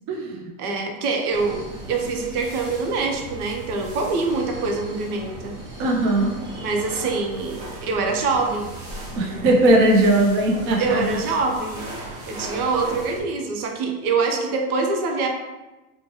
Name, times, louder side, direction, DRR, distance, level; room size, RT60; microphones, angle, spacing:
voice 1, 0.1-0.5 5.8-6.3 9.2-11.1, right 1 dB, 30° right, 0 dB, 0.4 m, -19 dB
voice 2, 0.6-5.6 6.6-8.7 9.2-9.4 10.5-11.8 12.3-15.3, right 4 dB, 80° right, 3 dB, 0.7 m, -25 dB
sound 1, 1.3-13.2, right 1 dB, 45° right, 1.0 m, -37 dB
2.9 x 2.1 x 3.0 m, 1.1 s
supercardioid pair, 125°, 44 cm